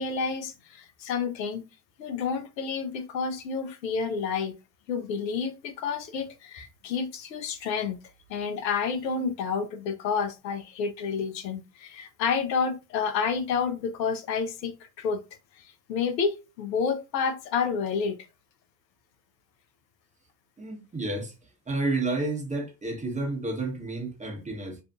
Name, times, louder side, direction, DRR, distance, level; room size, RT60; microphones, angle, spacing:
voice 1, 0.0-1.6 2.0-4.5 4.9-8.0 8.3-15.2 15.6-18.2, left 5 dB, 85° left, 0.6 m, -29 dB
voice 2, 20.6-21.3 21.7-24.8, right 2 dB, 15° right, 0.8 m, -30 dB
2.6 x 2.3 x 2.3 m
hypercardioid pair, 60°, 50 cm